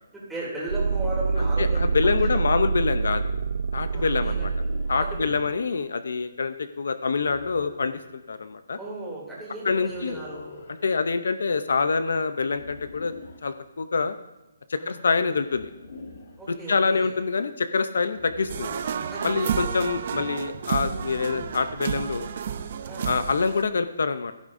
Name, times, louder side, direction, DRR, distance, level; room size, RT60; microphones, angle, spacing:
voice 1, 0.1-2.4 3.9-5.4 8.8-10.5 10.9-11.0 14.8-15.0 16.4-17.1 19.1-19.6 22.8-23.1, right 2 dB, 5° right, -8 dB, 2.8 m, -36 dB
sound 1, 0.7-5.6, right 4 dB, 80° right, 0.5 m, -26 dB
voice 2, 1.6-3.3 3.7-4.5 4.9-8.8 9.6-10.2 10.8-13.1 13.4-14.2 14.7-15.7 16.5-18.7 19.2-22.3 23.0-24.3, left 4 dB, 70° left, 11 dB, 0.6 m, -26 dB
sound 2, 4.2-5.1 7.1-8.1 9.8-10.8 12.5-13.5 15.4-16.4 18.1-19.1 20.8-21.8, left 3 dB, 50° left, 1.7 m, -44 dB
sound 3, 18.5-23.6, right 7 dB, 35° right, 0.6 m, -31 dB
15.5 x 13.0 x 2.6 m, 1.0 s
hypercardioid pair, 175°, 0 cm